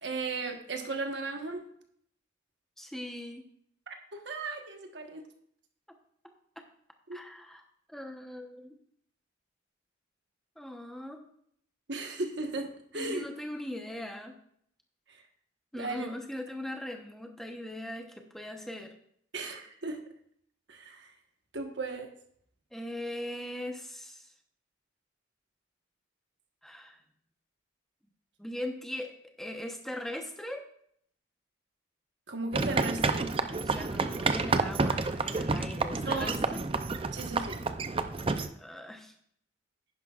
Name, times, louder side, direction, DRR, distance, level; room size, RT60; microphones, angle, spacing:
voice 1, 0.0-1.6 3.9-5.2 7.1-7.2 11.9-13.3 15.1-15.2 15.7-16.1 19.3-20.0 20.7-21.1 21.5-22.1 32.3-33.3 36.0-36.5 37.1-37.6, right 3 dB, 65° right, 4 dB, 1.3 m, -36 dB
voice 2, 2.8-3.4 7.1-7.6 7.9-8.8 10.6-11.2 12.9-14.4 15.7-18.9 22.7-24.3 26.6-27.0 28.4-30.7 33.6-36.6 38.6-39.1, left 1 dB, ahead, 3 dB, 0.9 m, -40 dB
sound 1, 32.5-38.5, right 3 dB, 30° right, 0.5 m, -30 dB
10.5 x 10.5 x 2.4 m, 0.66 s
head